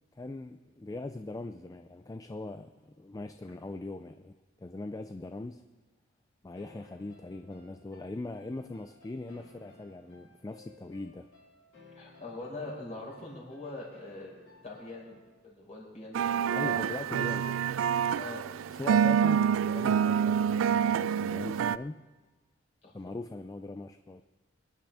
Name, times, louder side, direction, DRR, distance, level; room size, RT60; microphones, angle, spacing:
voice 1, 0.2-5.6 6.4-11.3 16.6-17.5 18.7-22.0 22.9-24.2, left 2 dB, 20° left, 8 dB, 0.4 m, -41 dB
sound 1, 6.5-15.4, left 3 dB, 80° left, 5.2 m, -58 dB
voice 2, 11.9-14.3 14.6-17.5 18.1-18.4 22.8-23.1, left 2 dB, 35° left, -3 dB, 5.0 m, -43 dB
sound 2, 16.1-21.8, right 8 dB, 85° right, 0.3 m, -27 dB
25.0 x 10.0 x 3.5 m, 1.2 s
head